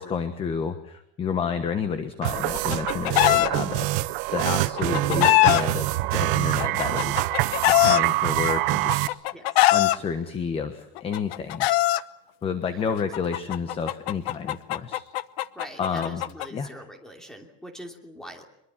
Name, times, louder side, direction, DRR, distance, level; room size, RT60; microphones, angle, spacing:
voice 1, 0.0-3.9 4.3-7.3 7.7-9.2 9.7-11.7 12.4-15.0 15.8-16.2 16.5-16.7, left 6 dB, 15° left, 10 dB, 1.2 m, -30 dB
sound 1, 2.2-9.1, right 18 dB, 55° right, 1.0 m, -25 dB
Chicken rooster, 2.4-3.5 4.6-5.6 6.6-8.0 8.9-10.0 11.0-12.0 13.1-16.5, left 17 dB, 65° left, 1.0 m, -21 dB
voice 2, 9.3-9.7 12.7-12.9 15.5-18.5, equal, ahead, 4 dB, 2.9 m, -43 dB
24.0 x 22.5 x 7.4 m, 0.78 s
supercardioid pair, 175°, 33 cm